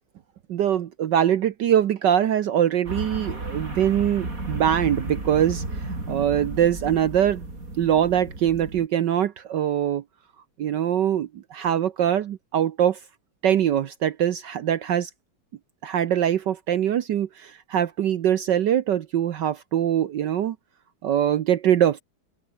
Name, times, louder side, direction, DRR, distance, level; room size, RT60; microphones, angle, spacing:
voice 1, 0.5-7.4 7.8-10.0 10.6-13.0 13.4-15.1 15.8-20.6 21.0-22.0, right 10 dB, 65° right, 1.5 m, -23 dB
sound 1, 2.9-8.9, right 2 dB, 45° right, 5.9 m, -33 dB
open air
omnidirectional pair, 2.1 m